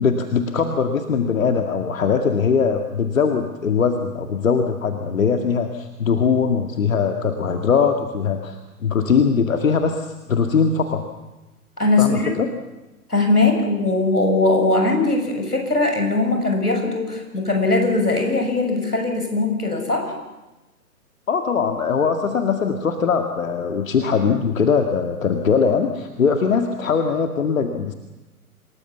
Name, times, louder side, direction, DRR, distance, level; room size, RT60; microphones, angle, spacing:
voice 1, 0.0-11.0 12.0-12.5 21.3-27.9, left 6 dB, 60° left, 5 dB, 2.1 m, -21 dB
voice 2, 11.8-12.3 13.1-20.1, left 2 dB, 85° left, 3 dB, 7.1 m, -20 dB
27.5 x 19.5 x 7.3 m, 1.0 s
figure-of-eight pair, 120°, 45 cm